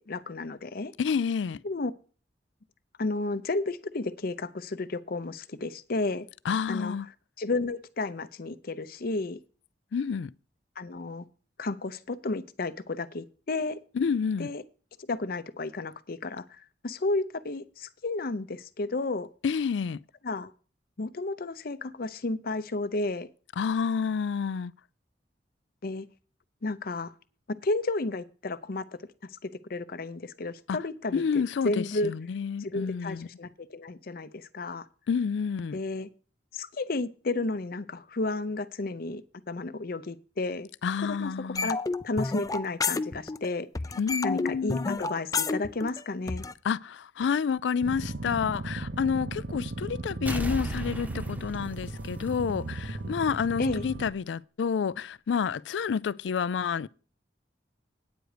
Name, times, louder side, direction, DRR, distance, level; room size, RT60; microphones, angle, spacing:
voice 1, 0.0-0.9 1.6-1.9 3.0-6.3 6.7-7.0 7.4-9.4 10.8-11.2 11.6-13.8 14.4-14.6 15.1-19.3 20.2-20.5 21.0-23.3 25.8-26.1 26.6-27.1 27.6-29.0 29.4-31.2 31.6-32.1 32.6-34.9 35.7-36.1 36.5-39.2 39.5-40.7 41.0-41.8 42.0-43.7 44.2-46.4 53.6-53.8, left 2 dB, 55° left, 0.7 m, -32 dB
voice 2, 1.0-1.6 6.4-7.1 9.9-10.3 13.9-14.5 19.4-20.0 23.6-24.7 30.7-30.8 31.1-33.3 35.1-35.8 40.8-41.7 44.0-45.0 46.6-56.9, left 6 dB, 85° left, 0.4 m, -29 dB
sound 1, 41.6-43.5 43.8-46.5, left 4 dB, 20° left, 0.4 m, -30 dB
sound 2, 47.8-54.1, right 2 dB, 70° right, 0.9 m, -36 dB
sound 3, 50.3-52.9 53.2-53.3, equal, 10° right, 0.8 m, -36 dB
9.2 x 9.1 x 5.0 m
head